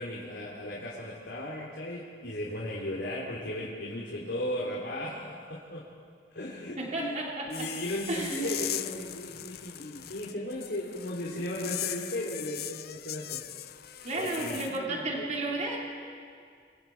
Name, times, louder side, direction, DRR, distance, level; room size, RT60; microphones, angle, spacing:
voice 1, 0.0-5.9 6.3-7.2 7.5-13.4 14.2-15.3, left 1 dB, 75° left, -5 dB, 3.3 m, -36 dB
voice 2, 6.8-7.7 8.1-8.5 14.0-15.8, right 2 dB, 45° right, -2 dB, 3.2 m, -33 dB
sound 1, 7.5-14.8, left 13 dB, 60° left, 0.6 m, -39 dB
26.5 x 24.5 x 4.6 m, 2.2 s
head